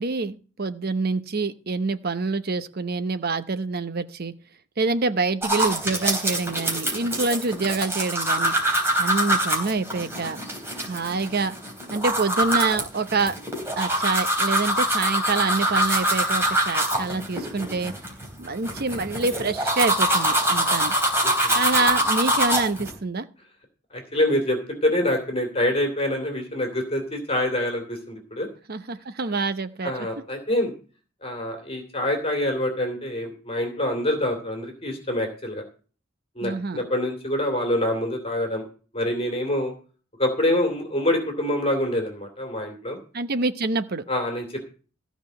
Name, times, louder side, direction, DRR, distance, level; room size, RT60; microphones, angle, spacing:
voice 1, 0.0-4.3 4.8-8.5 9.0-10.4 10.8-11.5 11.9-13.4 13.8-17.9 18.4-20.9 21.6-23.3 28.7-29.9 36.4-36.9 43.1-44.1, right 3 dB, 55° right, 11 dB, 0.8 m, -26 dB
Brushing teeth, 5.4-22.9, right 1 dB, 15° right, 3.8 m, -24 dB
voice 2, 21.2-21.6 23.9-28.5 29.8-30.7 31.2-35.6 36.4-38.6 38.9-39.7 40.2-43.0 44.1-44.6, left 1 dB, 30° left, 4 dB, 2.6 m, -26 dB
15.0 x 5.1 x 7.7 m, 0.38 s
head